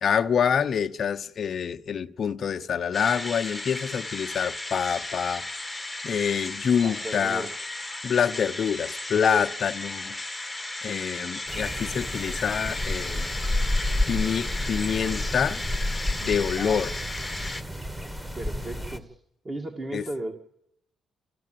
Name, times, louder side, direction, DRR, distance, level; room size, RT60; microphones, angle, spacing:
voice 1, 0.0-5.4 6.0-7.5 8.0-10.2 10.8-13.3 14.1-15.6 16.2-16.9 19.9-20.0, left 7 dB, 55° left, 0.8 m, -26 dB
sound 1, 2.9-17.6, left 2 dB, 5° left, 1.2 m, -35 dB
voice 2, 6.8-7.7 16.6-16.8 18.3-19.2 19.4-20.3, right 1 dB, 30° right, 2.0 m, -35 dB
sound 2, 11.5-19.0, left 1 dB, 10° right, 1.6 m, -30 dB
29.0 x 15.0 x 7.6 m
cardioid pair, 90°, 0 cm